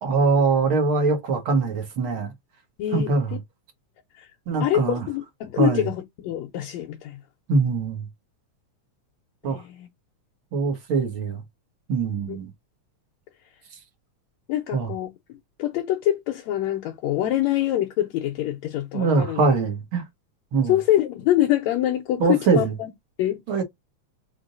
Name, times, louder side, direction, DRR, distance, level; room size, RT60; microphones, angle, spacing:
voice 1, 0.0-2.3 2.9-3.4 4.5-5.1 5.6-5.9 7.5-8.1 9.4-9.6 10.5-11.4 11.9-12.5 14.7-14.9 18.9-20.0 20.5-20.8 22.2-22.8 23.5-23.6, right 4 dB, 50° right, 1.9 m, -22 dB
voice 2, 2.8-3.1 4.6-7.2 9.5-9.9 12.3-12.4 14.5-15.1 15.6-19.4 20.7-22.9 23.2-23.4, left 13 dB, 75° left, 1.9 m, -25 dB
4.9 x 3.7 x 2.6 m
omnidirectional pair, 3.4 m